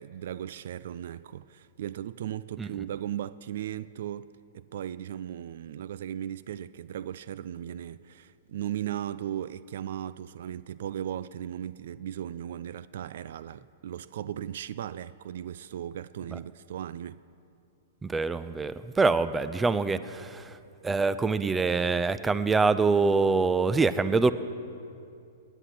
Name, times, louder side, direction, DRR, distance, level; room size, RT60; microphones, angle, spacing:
voice 1, 0.0-4.3 4.5-17.2, right 10 dB, 65° right, 0.3 m, -37 dB
voice 2, 18.0-20.6 20.8-24.3, right 4 dB, 10° right, 0.5 m, -25 dB
18.0 x 10.0 x 6.1 m
hypercardioid pair, 115°, 0 cm